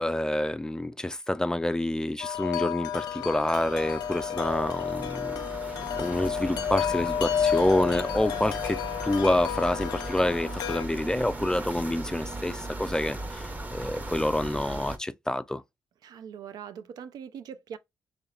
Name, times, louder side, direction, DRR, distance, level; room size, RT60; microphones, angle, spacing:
voice 1, 0.0-5.5 6.0-15.6, left 1 dB, 10° left, 0.3 m, -28 dB
Wind chime, 2.2-10.8, left 9 dB, 85° left, 0.4 m, -31 dB
sound 1, 2.8-15.0, right 2 dB, 25° right, 0.9 m, -38 dB
voice 2, 16.0-17.8, right 8 dB, 80° right, 0.4 m, -41 dB
3.1 x 2.8 x 3.8 m
cardioid pair, 80°, 7 cm